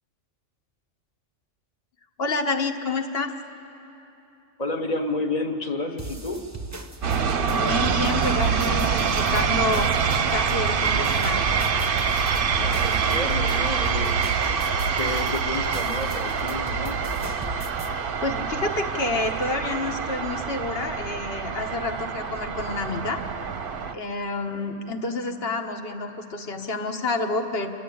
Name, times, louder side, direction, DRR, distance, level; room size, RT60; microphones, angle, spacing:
voice 1, 2.2-3.3 7.5-9.9 10.3-11.5 18.2-23.2 23.9-27.7, left 3 dB, 55° left, 5 dB, 1.4 m, -29 dB
voice 2, 4.6-6.5 12.5-14.6 15.0-17.0 24.5-24.9, left 2 dB, 35° left, 6 dB, 1.2 m, -31 dB
sound 1, 6.0-17.9, right 3 dB, 15° right, 0.7 m, -37 dB
sound 2, 7.0-23.9, right 6 dB, 50° right, 0.8 m, -25 dB
28.0 x 11.5 x 8.5 m, 3.0 s
omnidirectional pair, 1.3 m